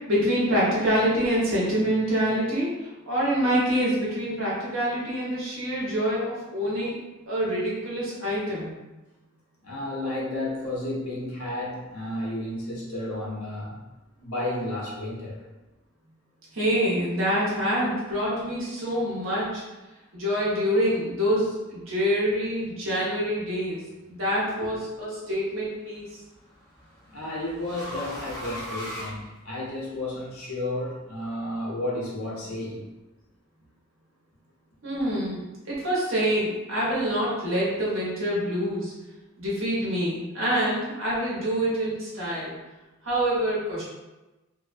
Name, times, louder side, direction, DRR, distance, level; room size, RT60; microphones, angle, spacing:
voice 1, 0.1-7.0 7.3-8.7 16.5-19.6 20.1-23.8 24.1-26.1 34.8-38.9 39.4-42.5 43.0-43.8, equal, 60° right, -7 dB, 1.0 m, -26 dB
voice 2, 9.6-13.8 14.2-15.4 24.6-24.7 27.1-32.8 35.3-35.4, left 1 dB, 80° left, -5 dB, 0.8 m, -32 dB
sound 1, 24.0-24.5 25.9-29.9, equal, 15° left, 0.4 m, -39 dB
2.5 x 2.1 x 2.5 m, 1.1 s
head